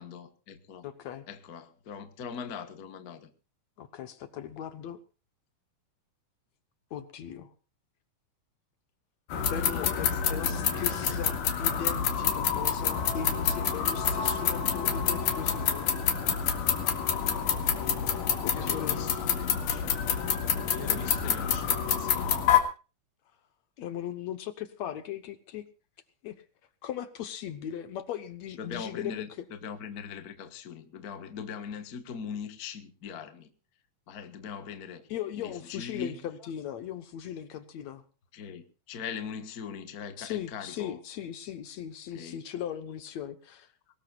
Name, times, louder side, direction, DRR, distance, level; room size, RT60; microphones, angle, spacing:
voice 1, 0.0-0.8 1.3-3.3 9.4-11.4 18.5-20.0 20.7-22.5 28.6-33.5 34.1-35.1 35.4-36.2 38.3-41.0 42.1-42.4, left 6 dB, 45° left, 1.3 m, -41 dB
voice 2, 0.8-1.3 3.8-5.0 6.9-7.5 9.5-16.2 18.4-19.3 23.8-25.7 26.2-26.4 26.8-29.5 35.1-38.0 40.2-43.7, left 10 dB, 65° left, 2.1 m, -38 dB
sound 1, 9.3-22.6, left 8 dB, 90° left, 3.5 m, -27 dB
22.0 x 19.0 x 2.4 m
omnidirectional pair, 3.6 m